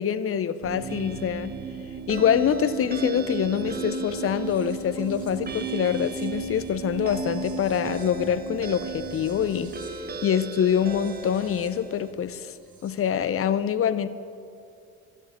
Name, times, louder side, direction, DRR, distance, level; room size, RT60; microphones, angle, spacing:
voice 1, 0.0-1.5 2.1-9.7 10.2-12.5 12.8-14.1, left 8 dB, 40° left, 14 dB, 0.8 m, -25 dB
sound 1, 0.6-13.1, right 5 dB, 55° right, 2.9 m, -36 dB
sound 2, 0.9-12.1, right 4 dB, 25° right, 0.9 m, -40 dB
13.0 x 8.3 x 8.0 m, 2.4 s
hypercardioid pair, 60°, 35 cm